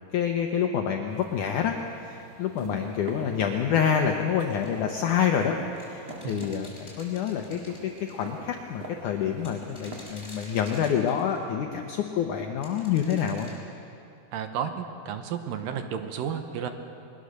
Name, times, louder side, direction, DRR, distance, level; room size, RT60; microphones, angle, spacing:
voice 1, 0.1-1.8 2.0-13.5, left 8 dB, 80° left, 3 dB, 1.8 m, -27 dB
sound 1, 1.1-10.9, right 3 dB, 45° right, 3.0 m, -45 dB
sound 2, 4.5-5.0 5.8-8.2 9.4-11.4 12.6-13.6, left 1 dB, 15° left, 5.0 m, -48 dB
voice 2, 14.3-16.7, right 8 dB, 70° right, 7 dB, 2.3 m, -32 dB
21.5 x 21.0 x 6.6 m, 2.7 s
omnidirectional pair, 4.8 m